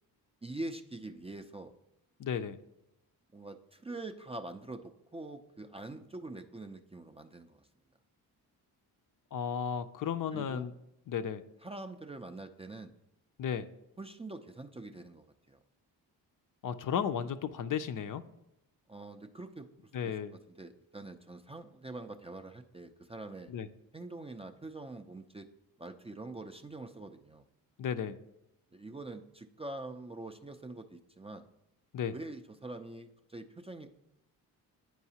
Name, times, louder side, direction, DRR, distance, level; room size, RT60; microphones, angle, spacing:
voice 1, 0.4-1.7 3.3-7.7 10.3-10.7 11.6-12.9 14.0-15.6 18.9-19.7 20.0-20.1 20.6-23.5 23.9-25.5 25.8-27.4 28.7-31.5 32.1-33.9, right 2 dB, 15° right, 6 dB, 0.4 m, -44 dB
voice 2, 2.2-2.6 9.3-10.7 11.1-11.4 13.4-13.7 16.6-18.2 19.9-20.3 23.5-23.7 27.8-28.2 31.9-32.1, left 8 dB, 45° left, 11 dB, 0.5 m, -34 dB
9.1 x 4.7 x 2.8 m, 0.85 s
supercardioid pair, 50°, 44 cm